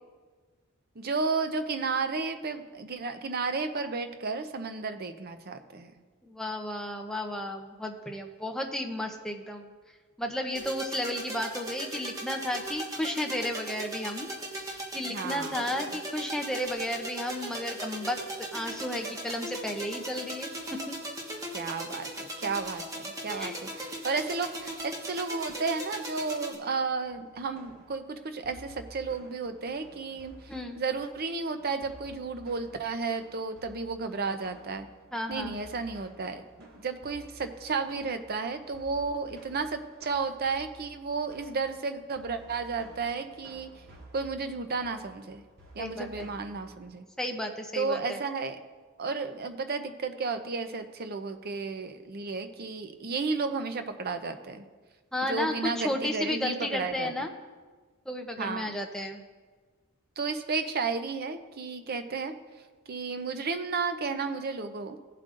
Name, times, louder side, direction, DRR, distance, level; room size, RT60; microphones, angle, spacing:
voice 1, 1.0-5.9 15.1-15.6 21.5-22.1 22.4-34.9 35.3-43.7 44.1-45.4 45.7-47.1 47.7-48.6 49.0-54.6 55.2-57.3 58.4-58.7 60.2-62.3 62.9-65.0, right 4 dB, 45° right, 8 dB, 0.6 m, -33 dB
voice 2, 6.3-9.7 10.2-14.3 14.9-21.0 23.3-23.5 30.5-30.8 35.1-35.6 45.8-46.3 47.2-48.2 55.1-57.3 58.1-59.2, left 1 dB, 5° left, 2 dB, 0.7 m, -33 dB
sound 1, 10.5-26.5, right 1 dB, 15° right, 1.4 m, -38 dB
sound 2, 27.0-46.8, right 1 dB, 80° right, 2.7 m, -53 dB
17.0 x 7.6 x 2.5 m, 1.4 s
head